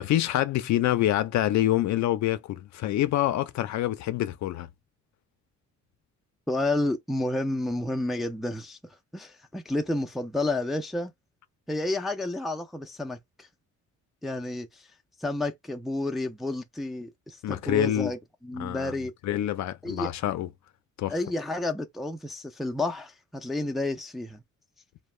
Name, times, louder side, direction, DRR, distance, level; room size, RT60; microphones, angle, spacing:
voice 1, 0.0-4.7 17.4-18.1 18.6-20.5 21.0-21.1, left 13 dB, 65° left, 0.4 m, -26 dB
voice 2, 6.5-8.8 9.1-11.1 11.7-13.2 14.2-14.7 15.2-18.2 18.4-19.1 19.8-20.1 21.1-24.4, left 2 dB, ahead, 0.3 m, -30 dB
2.2 x 2.1 x 3.1 m
cardioid pair, 90°, 30 cm